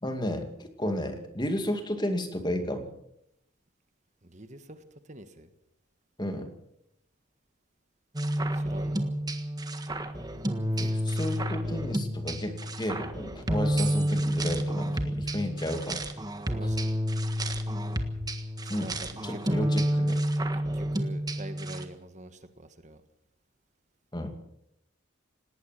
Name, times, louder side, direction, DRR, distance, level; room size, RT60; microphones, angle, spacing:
voice 1, 0.0-2.9 6.2-6.5 10.7-16.0 18.7-18.9 19.2-20.2 24.1-24.3, left 1 dB, 20° left, 7 dB, 2.3 m, -32 dB
voice 2, 4.2-5.5 8.5-9.2 10.7-10.9 16.5-17.0 18.6-19.7 20.5-23.0, right 1 dB, 35° right, 9 dB, 1.5 m, -45 dB
sound 1, 8.1-21.8, equal, 20° right, 1.6 m, -30 dB
19.0 x 18.5 x 7.6 m, 0.77 s
head